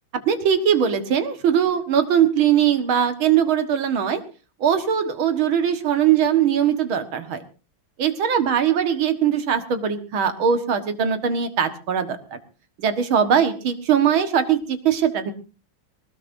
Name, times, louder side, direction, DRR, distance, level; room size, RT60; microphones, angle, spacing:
voice 1, 0.3-4.2 4.6-7.4 8.0-12.4 12.8-15.3, right 8 dB, 90° right, 9 dB, 2.4 m, -20 dB
20.5 x 19.0 x 2.7 m, 0.33 s
omnidirectional pair, 2.2 m